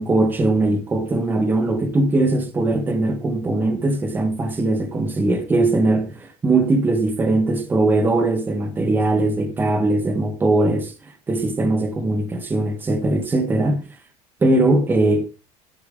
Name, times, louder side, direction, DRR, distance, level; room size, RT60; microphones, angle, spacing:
voice 1, 0.0-13.9 14.4-15.3, right 2 dB, 15° right, 1.4 m, -20 dB
12.0 x 6.6 x 3.8 m
cardioid pair, 175°, 14 cm